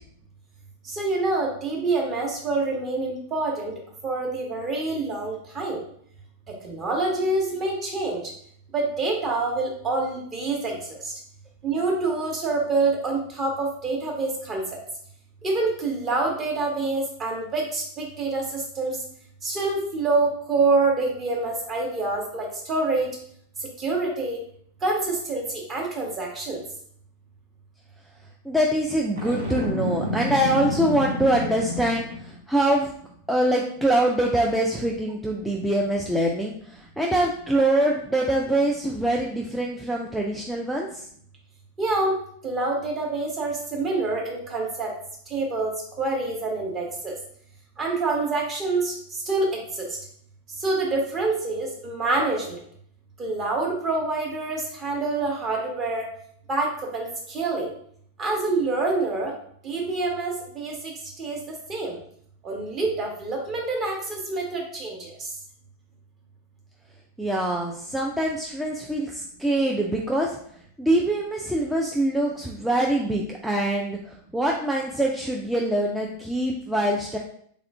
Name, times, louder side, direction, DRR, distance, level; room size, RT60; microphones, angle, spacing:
voice 1, 0.8-3.7 4.0-5.8 6.6-8.2 8.7-11.1 11.6-14.6 15.4-19.0 19.4-23.1 23.8-24.4 24.8-26.6 41.8-42.2 42.4-44.9 45.3-47.1 47.8-49.9 50.6-52.6 53.2-56.1 56.5-57.7 58.2-59.3 59.6-61.4 61.7-62.0 62.4-65.3, right 3 dB, 25° right, -1 dB, 1.0 m, -26 dB
voice 2, 28.5-32.9 33.3-41.0 67.2-70.4 70.8-77.2, right 1 dB, ahead, -2 dB, 0.3 m, -24 dB
Boom, 29.2-32.4, equal, 70° right, 0.8 m, -29 dB
3.4 x 2.4 x 3.2 m, 0.64 s
figure-of-eight pair, 90°, 0 cm